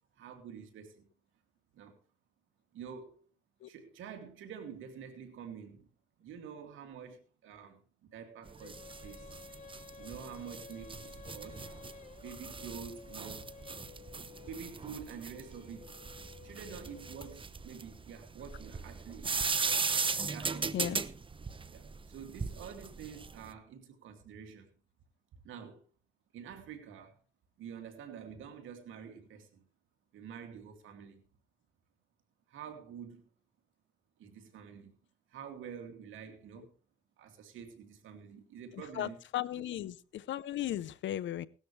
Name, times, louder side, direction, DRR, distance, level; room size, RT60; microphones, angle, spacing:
voice 1, 0.2-1.1 1.7-2.0 2.7-3.2 3.7-5.9 6.2-9.3 10.0-11.7 12.2-13.5 14.4-15.9 16.4-19.6 20.1-21.0 21.7-24.7 25.4-25.8 26.3-27.2 27.6-29.6 30.1-31.2 32.5-33.2 34.2-34.9 35.3-36.7 37.2-39.1 39.5-39.6, right 7 dB, 80° right, 2.6 m, -48 dB
sound 1, 8.5-23.5, right 4 dB, 25° right, 0.9 m, -38 dB
Female singing, 8.6-17.7, left 6 dB, 40° left, 2.0 m, -53 dB
voice 2, 38.7-41.5, left 12 dB, 70° left, 0.8 m, -36 dB
18.0 x 12.5 x 3.3 m
cardioid pair, 90°, 20 cm